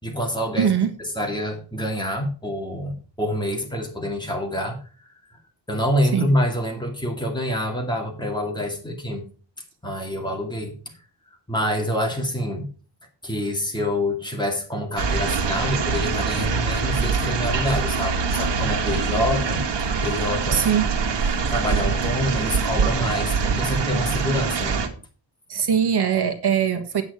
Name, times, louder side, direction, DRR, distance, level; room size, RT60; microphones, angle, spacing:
voice 1, 0.0-0.7 1.2-4.8 5.7-9.3 9.8-10.8 11.5-12.7 13.2-19.6 20.0-20.6 21.5-24.8, equal, 10° left, 1 dB, 2.4 m, -26 dB
voice 2, 0.6-0.9 6.1-6.3 20.5-20.9 25.5-27.0, right 8 dB, 65° right, 7 dB, 1.5 m, -21 dB
sound 1, 15.0-24.9, right 5 dB, 80° right, 1.7 m, -24 dB
8.9 x 8.1 x 4.8 m, 0.38 s
wide cardioid pair, 160°, 42 cm